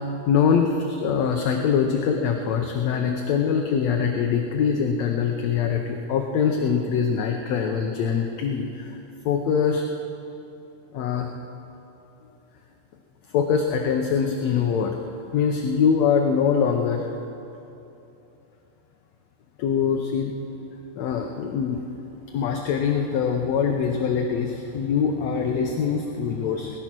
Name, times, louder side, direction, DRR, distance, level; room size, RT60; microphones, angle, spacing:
voice 1, 0.3-9.0 9.3-9.9 10.9-11.3 13.3-15.0 15.3-17.1 19.6-20.3 21.0-21.8 22.3-26.8, left 6 dB, 70° left, 3 dB, 1.9 m, -23 dB
19.5 x 11.5 x 6.1 m, 2.9 s
omnidirectional pair, 3.6 m